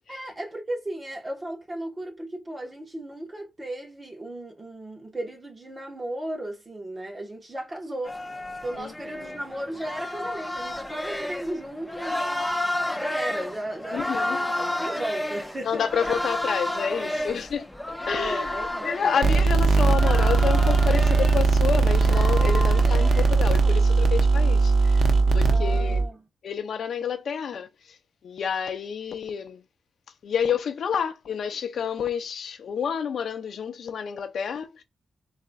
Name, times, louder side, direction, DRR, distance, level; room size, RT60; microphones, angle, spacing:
voice 1, 0.1-8.2 8.6-12.6 12.9-16.0 18.1-19.2 25.5-26.3, right 1 dB, 20° right, 1.1 m, -35 dB
sound 1, 8.0-23.8, left 1 dB, 5° left, 0.4 m, -32 dB
voice 2, 13.9-14.4 15.6-18.5 18.8-26.0 26.4-27.7 28.2-29.6 30.2-34.8, left 7 dB, 65° left, 0.5 m, -29 dB
sound 2, 19.2-26.0, right 4 dB, 70° right, 0.7 m, -19 dB
4.1 x 3.7 x 2.3 m
wide cardioid pair, 180°, 0 cm